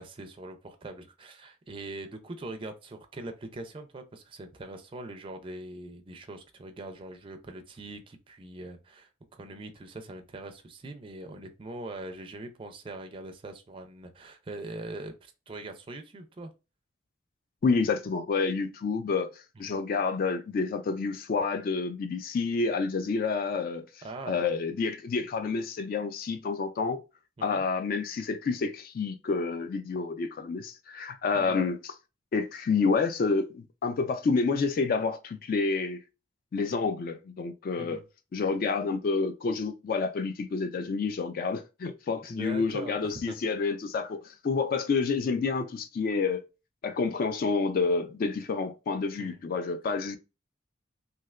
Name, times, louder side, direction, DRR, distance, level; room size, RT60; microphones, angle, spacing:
voice 1, 0.0-16.5 19.6-19.8 24.0-24.5 27.4-27.6 31.3-31.6 37.8-38.0 42.3-43.4 49.2-49.4, right 2 dB, 30° right, 0.4 m, -42 dB
voice 2, 17.6-19.3 19.6-23.9 24.3-27.0 27.4-32.0 32.3-36.0 36.5-38.0 38.3-46.4 46.8-50.2, left 4 dB, 50° left, 0.3 m, -29 dB
3.2 x 2.7 x 2.3 m
head